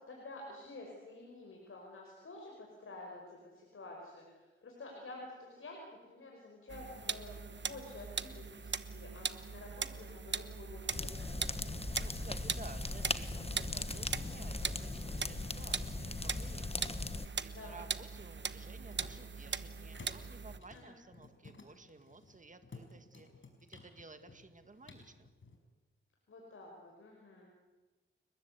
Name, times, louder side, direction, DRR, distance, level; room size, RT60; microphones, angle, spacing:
voice 1, 0.1-11.4 17.5-17.8 20.7-21.0 26.3-27.5, left 2 dB, 80° left, 0 dB, 5.3 m, -50 dB
sound 1, 6.7-20.6, right 5 dB, 60° right, 1.0 m, -41 dB
sound 2, 10.9-17.3, left 3 dB, 30° left, 1.2 m, -39 dB
voice 2, 12.0-16.8 17.4-23.3 23.7-25.3, right 3 dB, 35° right, 8 dB, 1.9 m, -54 dB
sound 3, 18.7-25.6, left 3 dB, 65° left, 5.4 m, -57 dB
30.0 x 20.5 x 8.3 m, 1.2 s
wide cardioid pair, 85°, 21 cm